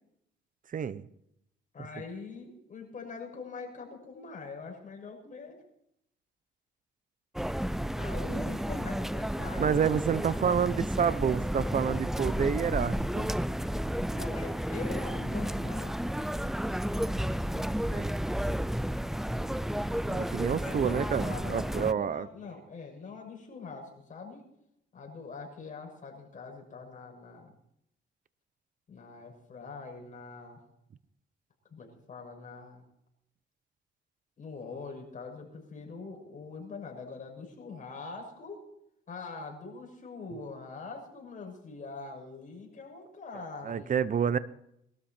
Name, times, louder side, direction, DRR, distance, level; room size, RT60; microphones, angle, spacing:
voice 1, 0.7-1.0 9.6-13.3 17.6-17.7 17.9-18.1 20.0-22.3 43.6-44.4, right 7 dB, 40° right, 15 dB, 0.8 m, -29 dB
voice 2, 1.7-5.6 8.0-9.6 14.1-16.0 20.5-24.4 24.9-27.5 28.9-30.6 31.7-32.8 34.4-38.6 39.1-44.0, left 4 dB, 40° left, 1 dB, 6.5 m, -43 dB
sound 1, 7.3-21.9, equal, ahead, 0.5 m, -32 dB
22.0 x 13.0 x 4.4 m, 0.78 s
cardioid pair, 90°, 20 cm